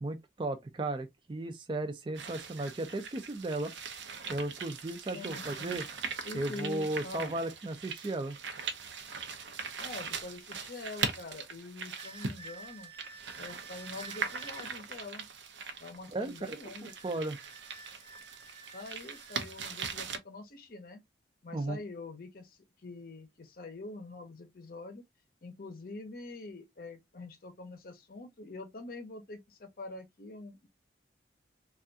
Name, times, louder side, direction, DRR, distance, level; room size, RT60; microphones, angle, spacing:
voice 1, 0.0-3.7 4.3-5.8 6.3-8.4 16.1-16.6 16.8-17.4 21.5-21.8, right 2 dB, 25° right, 0.4 m, -35 dB
sound 1, 2.1-20.2, right 5 dB, 80° right, 0.6 m, -41 dB
voice 2, 5.1-5.8 6.2-7.4 9.8-12.9 13.4-15.2 15.8-17.3 18.7-21.0 21.4-25.0 25.4-30.7, left 3 dB, 50° left, 0.6 m, -45 dB
sound 2, 12.0-14.7 16.9-19.4, right 4 dB, 15° left, 0.9 m, -51 dB
3.4 x 2.3 x 2.6 m
head